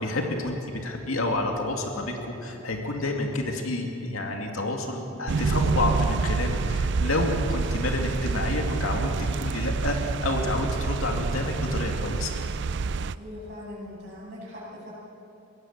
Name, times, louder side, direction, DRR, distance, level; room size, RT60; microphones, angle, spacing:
voice 1, 0.0-12.4, left 2 dB, 80° left, 2 dB, 2.4 m, -29 dB
sound 1, 5.3-13.2, right 4 dB, 55° right, 0.5 m, -27 dB
voice 2, 13.1-14.9, left 1 dB, 40° right, -11 dB, 7.2 m, -40 dB
22.5 x 17.5 x 7.3 m, 2.7 s
head